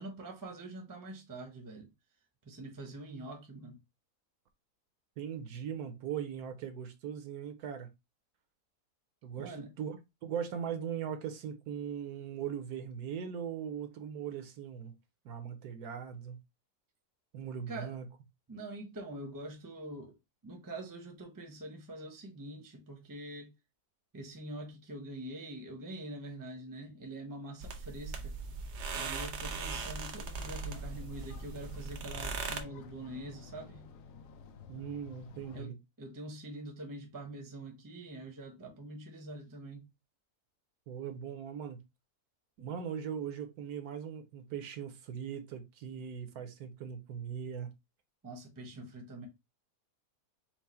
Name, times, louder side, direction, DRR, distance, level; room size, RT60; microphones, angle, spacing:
voice 1, 0.0-1.9 2.4-3.8 9.4-9.7 17.7-17.9 18.5-20.2 20.4-23.5 24.1-28.4 28.9-33.9 35.5-39.9 48.2-49.3, right 1 dB, 15° right, 0.7 m, -45 dB
voice 2, 5.2-7.9 9.2-14.9 15.2-16.4 17.3-18.1 34.7-35.8 40.9-41.8 42.6-47.7, right 8 dB, 75° right, 1.2 m, -40 dB
sound 1, 27.6-32.6, right 4 dB, 60° right, 0.8 m, -39 dB
sound 2, 30.3-35.6, left 5 dB, 85° left, 1.1 m, -51 dB
4.6 x 2.1 x 4.2 m
omnidirectional pair, 1.7 m